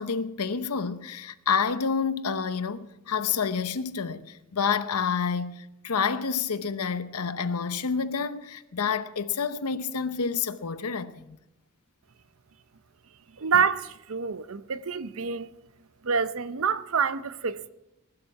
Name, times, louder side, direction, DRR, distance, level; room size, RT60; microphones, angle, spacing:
voice 1, 0.0-11.4, left 6 dB, 90° left, 0.8 m, -29 dB
voice 2, 13.4-15.5 16.0-17.7, right 6 dB, 65° right, 0.6 m, -27 dB
20.0 x 12.0 x 4.7 m
head